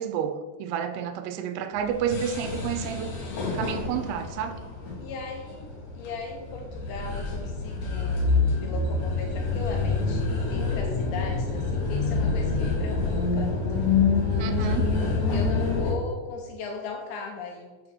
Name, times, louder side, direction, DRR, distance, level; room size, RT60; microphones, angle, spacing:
voice 1, 0.0-3.1 3.5-4.6 14.4-14.9, right 8 dB, 85° right, 9 dB, 3.4 m, -30 dB
sound 1, 1.7-15.9, left 4 dB, 55° left, 2.3 m, -27 dB
voice 2, 5.0-13.6 14.3-14.5 14.9-17.7, left 3 dB, 75° left, 1 dB, 2.7 m, -38 dB
7.5 x 5.6 x 6.0 m, 1.3 s
omnidirectional pair, 5.8 m